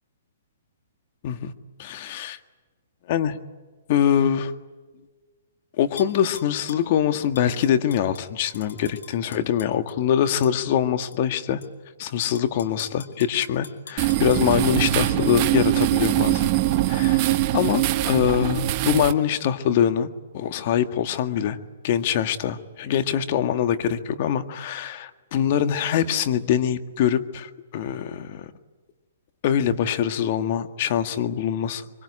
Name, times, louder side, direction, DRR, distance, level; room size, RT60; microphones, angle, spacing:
voice 1, 1.8-2.4 3.1-3.4 3.9-4.5 5.8-11.6 12.0-16.5 16.9-20.1 20.3-21.6 21.8-28.5 29.4-31.8, left 9 dB, 45° left, 9 dB, 1.8 m, -24 dB
Tap / Glass, 6.0-6.9 7.3-10.0 10.4-10.6 11.1-11.7 12.2-14.9 15.4-15.5, left 5 dB, 85° left, 3.0 m, -43 dB
sound 1, 14.0-19.1, right 15 dB, 35° right, 1.3 m, -22 dB
24.5 x 24.0 x 9.9 m, 1.4 s
hypercardioid pair, 145°, 0 cm